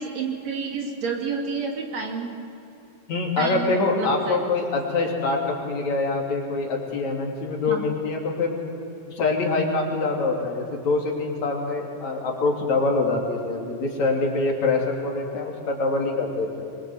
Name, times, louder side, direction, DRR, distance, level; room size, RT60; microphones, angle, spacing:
voice 1, 0.0-2.4 3.4-4.4 7.7-7.8, right 4 dB, 60° right, 2 dB, 3.8 m, -30 dB
voice 2, 3.1-8.5 9.1-16.6, left 3 dB, 65° left, 1 dB, 4.2 m, -25 dB
24.5 x 23.0 x 8.0 m, 2.8 s
omnidirectional pair, 3.4 m